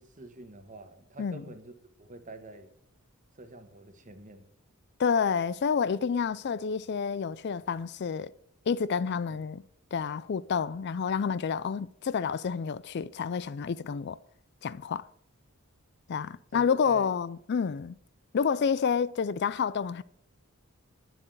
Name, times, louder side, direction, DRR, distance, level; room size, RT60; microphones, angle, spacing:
voice 1, 0.0-2.7 3.3-4.5 9.3-9.4 16.5-17.1, right 2 dB, 35° right, 1.3 m, -47 dB
voice 2, 5.0-8.3 8.7-9.6 9.9-14.2 14.6-15.1 16.1-18.0 18.3-20.0, left 6 dB, 50° left, 0.4 m, -29 dB
10.0 x 7.8 x 7.9 m
head